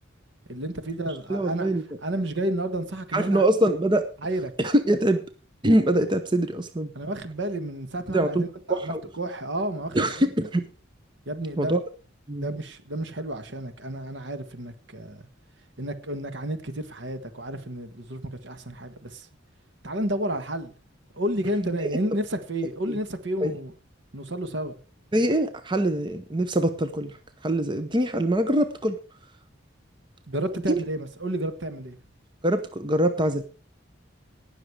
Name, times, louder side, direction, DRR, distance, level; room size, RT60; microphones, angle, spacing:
voice 1, 0.5-1.7 2.0-3.5 4.2-4.5 6.9-10.2 11.3-11.8 12.4-15.3 15.8-19.3 19.8-20.7 21.1-23.7 24.1-24.8 30.3-32.0, right 1 dB, 65° right, 1.5 m, -31 dB
voice 2, 1.3-1.8 3.1-4.1 4.6-5.2 5.6-6.9 8.1-9.0 9.9-10.7 11.6-11.8 12.3-12.5 23.4-23.5 25.1-27.2 27.4-29.0 30.7-30.8 32.4-33.4, right 1 dB, 25° right, 0.8 m, -23 dB
18.0 x 6.5 x 4.7 m
head